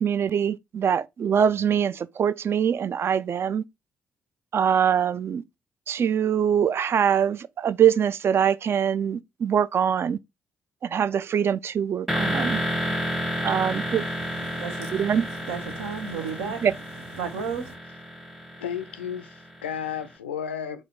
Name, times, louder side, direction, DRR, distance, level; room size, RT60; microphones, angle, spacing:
voice 1, 0.0-3.6 4.5-5.4 5.9-10.2 10.8-12.6 13.4-14.0 14.9-15.2 16.6-16.7, right 8 dB, 40° right, 0.3 m, -23 dB
sound 1, 12.1-19.9, equal, 5° right, 0.8 m, -31 dB
voice 2, 12.2-16.7 17.2-17.7, right 6 dB, 70° right, 0.8 m, -36 dB
voice 3, 18.6-20.8, left 8 dB, 80° left, 0.4 m, -33 dB
4.3 x 2.4 x 3.8 m
figure-of-eight pair, 40°, 6 cm